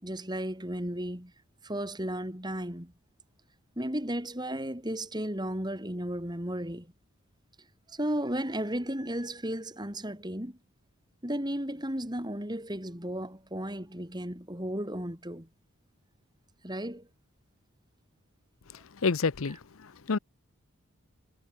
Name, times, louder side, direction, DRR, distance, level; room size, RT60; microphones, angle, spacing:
voice 1, 0.0-1.3 1.6-2.9 3.8-6.9 7.9-10.6 11.2-15.5 16.6-17.1, right 1 dB, 20° right, 4.9 m, -34 dB
voice 2, 19.0-20.2, left 4 dB, 65° left, 0.7 m, -29 dB
head